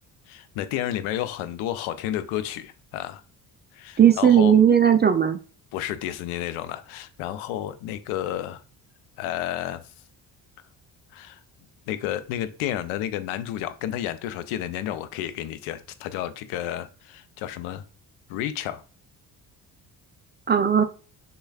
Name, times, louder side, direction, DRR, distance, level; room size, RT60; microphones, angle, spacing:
voice 1, 0.3-3.2 3.7-4.6 5.7-8.6 9.2-9.8 11.1-11.4 11.9-17.8 18.3-18.8, left 12 dB, 75° left, 0.6 m, -31 dB
voice 2, 4.0-5.4 20.5-20.8, right 8 dB, 25° right, 0.3 m, -17 dB
6.1 x 2.3 x 2.3 m
hypercardioid pair, 50°, 48 cm